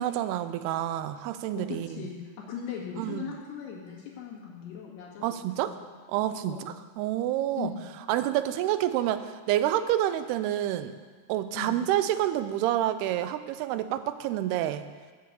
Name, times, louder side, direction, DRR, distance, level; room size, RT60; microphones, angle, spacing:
voice 1, 0.0-2.1 3.0-3.2 5.2-5.7 6.1-7.7 8.1-11.0 11.3-14.9, right 12 dB, 85° right, 12 dB, 2.6 m, -28 dB
voice 2, 1.6-5.4 5.6-5.7 6.5-6.6 7.6-7.8 11.5-11.8, left 7 dB, 85° left, -4 dB, 4.0 m, -38 dB
8.2 x 7.6 x 8.1 m, 1.5 s
omnidirectional pair, 4.6 m